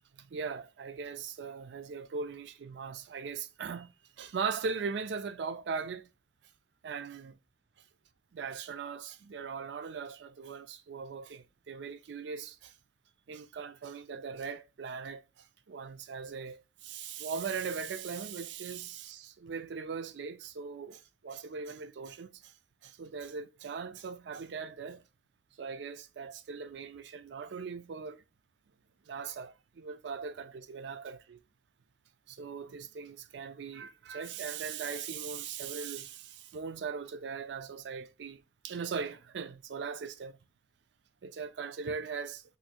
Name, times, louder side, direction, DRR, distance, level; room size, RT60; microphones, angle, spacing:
voice 1, 0.2-6.1 6.8-7.4 8.3-12.7 13.3-22.5 22.8-25.0 25.6-28.2 29.1-31.4 32.3-40.4 41.2-42.4, right 5 dB, 70° right, 0.4 m, -39 dB
2.7 x 2.6 x 4.2 m
head